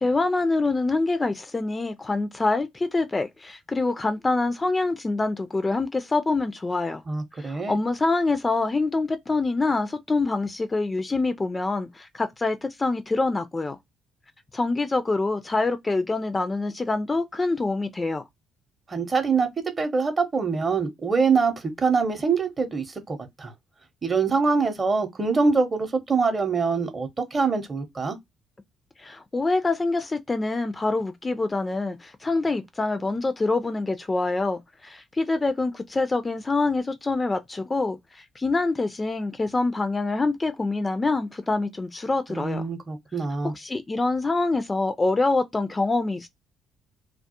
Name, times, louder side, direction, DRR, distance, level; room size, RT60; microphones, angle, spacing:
voice 1, 0.0-7.0 7.4-13.8 14.5-18.2 29.0-42.6 43.4-46.3, left 3 dB, 25° left, 0.3 m, -25 dB
voice 2, 7.1-7.8 18.9-19.5 19.8-23.5 24.0-28.2 42.3-43.5, right 4 dB, 35° right, 0.7 m, -24 dB
2.3 x 2.1 x 2.8 m
figure-of-eight pair, 45°, 0 cm